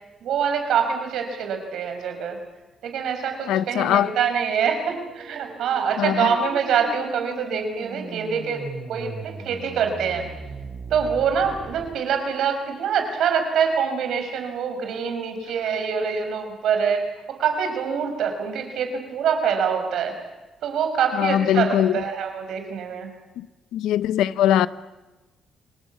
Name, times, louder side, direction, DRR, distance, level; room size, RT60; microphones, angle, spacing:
voice 1, 0.2-2.4 2.8-10.3 10.9-17.0 17.4-20.2 20.6-23.1, right 7 dB, 75° right, 5.6 m, -25 dB
voice 2, 3.5-4.1 6.0-6.3 21.1-22.0 23.4-23.5 23.7-24.7, left 11 dB, 90° left, 0.9 m, -21 dB
sound 1, 4.8-11.9, right 4 dB, 45° right, 5.0 m, -38 dB
29.0 x 20.0 x 8.5 m
cardioid pair, 90°, 0 cm